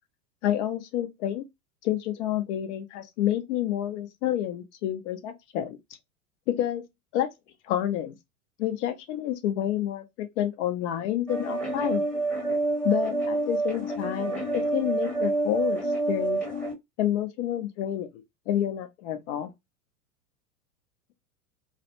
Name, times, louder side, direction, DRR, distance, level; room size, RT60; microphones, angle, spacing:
voice 1, 0.4-1.4 1.8-5.8 6.5-6.8 7.1-7.3 7.6-8.1 8.6-12.0 12.8-15.8 16.1-16.4 17.0-18.1 18.5-19.5, left 11 dB, 50° left, 0.7 m, -28 dB
sound 1, 11.3-16.7, right 2 dB, 5° left, 1.0 m, -28 dB
2.4 x 2.1 x 2.8 m
hypercardioid pair, 95°, 44 cm